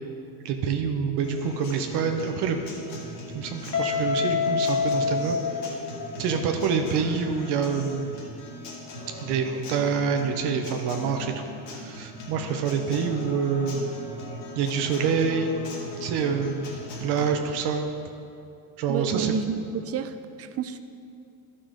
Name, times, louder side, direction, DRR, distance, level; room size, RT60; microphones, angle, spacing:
voice 1, 0.4-2.6 3.3-5.4 6.2-8.2 9.2-11.4 11.7-13.8 14.5-15.6 16.0-16.7 17.0-17.9 18.8-19.3, right 6 dB, 65° right, 4 dB, 1.0 m, -26 dB
Acoustic guitar, 1.2-17.2, left 1 dB, 75° left, 2.3 m, -39 dB
Guitar, 3.7-6.6, left 5 dB, 35° left, 1.6 m, -27 dB
voice 2, 18.9-20.8, right 7 dB, 35° right, 10 dB, 0.5 m, -30 dB
12.0 x 5.7 x 5.1 m, 2.5 s
cardioid pair, 120°, 42 cm